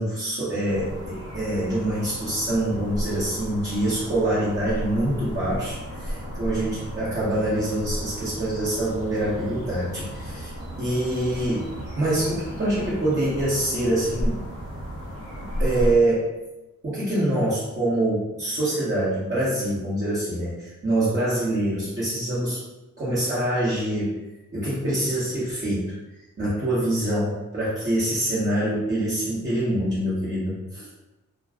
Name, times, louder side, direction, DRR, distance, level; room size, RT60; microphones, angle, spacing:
voice 1, 0.0-14.4 15.4-16.3 16.8-22.6 23.0-24.1 24.5-25.9 26.4-30.9, right 1 dB, 35° right, -10 dB, 1.1 m, -25 dB
sound 1, 0.7-16.0, equal, 50° right, 1.2 m, -34 dB
2.3 x 2.2 x 3.5 m, 1.0 s
cardioid pair, 65°, 32 cm